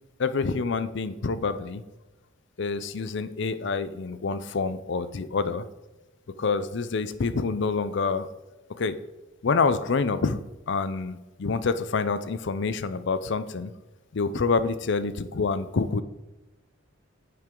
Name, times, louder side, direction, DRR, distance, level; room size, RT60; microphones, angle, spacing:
voice 1, 0.2-1.8 2.6-5.6 6.4-8.3 8.8-9.0 9.4-10.4 10.7-13.7 14.1-16.0, left 4 dB, 60° left, 13 dB, 0.5 m, -27 dB
9.5 x 7.8 x 3.8 m, 1.1 s
head